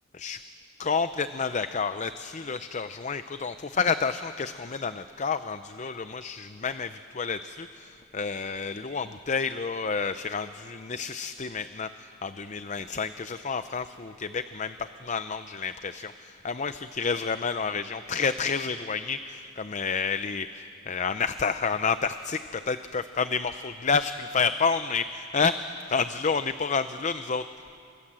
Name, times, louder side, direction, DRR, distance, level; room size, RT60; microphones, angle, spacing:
voice 1, 0.8-25.6 25.9-27.5, left 5 dB, 35° left, 11 dB, 0.6 m, -30 dB
29.5 x 26.0 x 7.6 m, 2.5 s
head